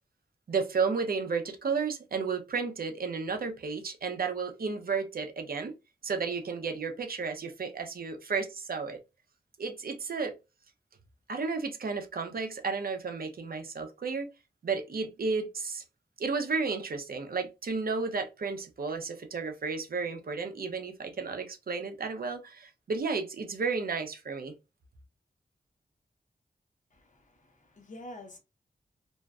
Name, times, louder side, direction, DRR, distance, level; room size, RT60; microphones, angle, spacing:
voice 1, 0.5-5.7 6.0-9.0 9.6-10.4 11.3-14.3 14.6-15.8 16.2-24.5, right 4 dB, 65° right, 0.6 m, -32 dB
voice 2, 26.9-28.4, left 1 dB, 50° left, 0.8 m, -48 dB
2.5 x 2.1 x 2.3 m
wide cardioid pair, 65°, 17 cm